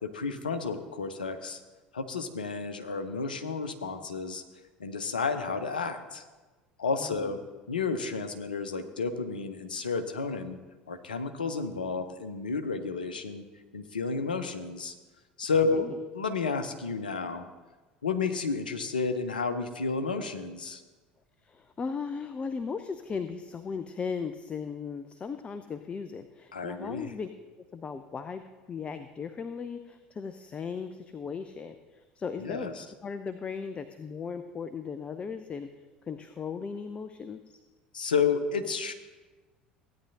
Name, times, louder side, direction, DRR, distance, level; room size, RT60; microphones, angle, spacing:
voice 1, 0.0-1.6 1.9-4.4 4.8-6.2 6.8-7.4 7.7-10.6 10.9-13.4 13.7-14.9 15.4-15.9 16.1-17.5 18.0-20.8 26.5-27.1 32.4-32.8 37.9-38.9, left 4 dB, 75° left, 8 dB, 0.8 m, -31 dB
voice 2, 21.4-27.3 27.7-32.7 33.0-35.7 36.1-37.6, left 5 dB, 25° left, 10 dB, 0.5 m, -37 dB
16.0 x 9.5 x 2.8 m, 1.3 s
figure-of-eight pair, 70°, 5 cm